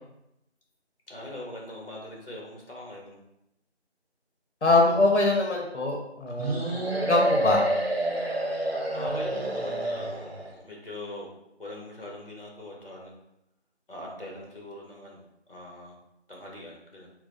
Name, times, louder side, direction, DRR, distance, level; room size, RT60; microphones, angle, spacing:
voice 1, 1.1-3.2 8.9-10.2 10.6-11.3 11.6-13.1 13.9-15.9 16.3-17.1, left 1 dB, 55° left, -2 dB, 1.2 m, -41 dB
voice 2, 4.6-7.6, left 2 dB, 90° left, -1 dB, 0.9 m, -23 dB
sound 1, 6.4-10.6, right 1 dB, 60° right, 0.8 m, -28 dB
4.1 x 2.3 x 3.9 m, 0.85 s
figure-of-eight pair, 175°, 34 cm